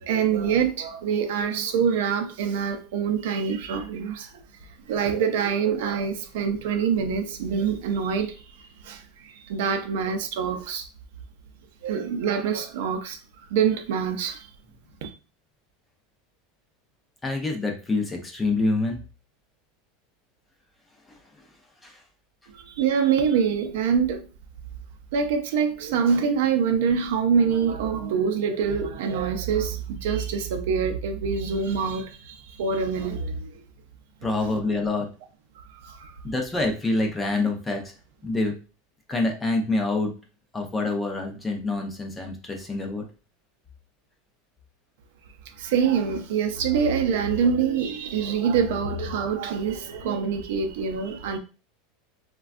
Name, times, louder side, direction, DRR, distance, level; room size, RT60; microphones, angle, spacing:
voice 1, 0.0-4.3 4.9-8.3 8.8-10.9 11.8-13.2 13.5-14.5 15.0-15.1 22.7-24.2 25.1-33.5 35.8-36.1 45.6-51.4, right 6 dB, 65° right, 0.5 m, -25 dB
voice 2, 17.2-19.0 21.8-22.0 34.2-35.1 36.2-37.9 38.2-38.5 39.1-40.1 40.5-43.0, left 2 dB, 10° left, 0.4 m, -26 dB
3.3 x 2.2 x 2.4 m
supercardioid pair, 170°, 0 cm